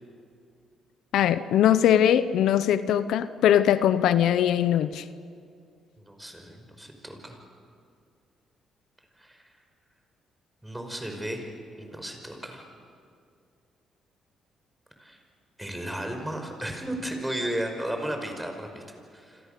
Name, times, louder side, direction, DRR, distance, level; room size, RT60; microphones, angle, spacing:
voice 1, 1.1-5.0, left 10 dB, 80° left, 13 dB, 0.8 m, -21 dB
voice 2, 6.0-7.4 9.2-9.5 10.6-11.5 11.8-12.7 15.0-15.2 15.6-18.8 19.1-19.4, right 1 dB, 5° right, 4 dB, 5.5 m, -34 dB
27.5 x 26.0 x 6.8 m, 2.3 s
cardioid pair, 90°, 0 cm